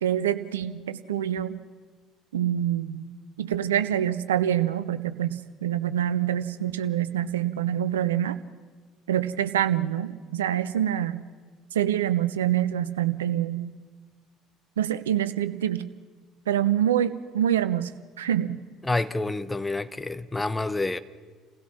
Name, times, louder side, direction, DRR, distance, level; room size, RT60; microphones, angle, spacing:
voice 1, 0.0-1.6 2.3-3.1 3.4-8.4 9.1-11.2 11.7-13.7 14.8-15.8 16.5-17.9 18.2-18.6, right 11 dB, 75° right, 0.7 m, -26 dB
voice 2, 18.8-21.0, left 2 dB, 10° left, 0.9 m, -28 dB
28.5 x 16.5 x 5.9 m
figure-of-eight pair, 55°, 0 cm